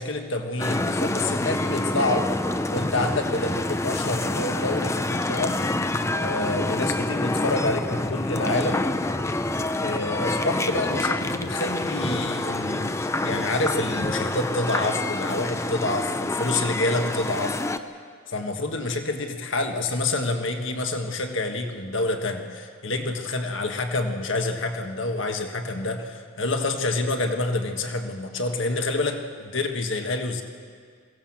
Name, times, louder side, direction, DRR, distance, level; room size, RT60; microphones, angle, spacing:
voice 1, 0.0-2.3 2.7-5.6 6.1-8.9 9.8-13.0 13.2-17.6 18.3-30.4, left 2 dB, 65° left, 5 dB, 1.6 m, -27 dB
sound 1, 0.6-17.8, left 2 dB, 15° left, 0.5 m, -27 dB
22.5 x 17.0 x 7.4 m, 2.1 s
head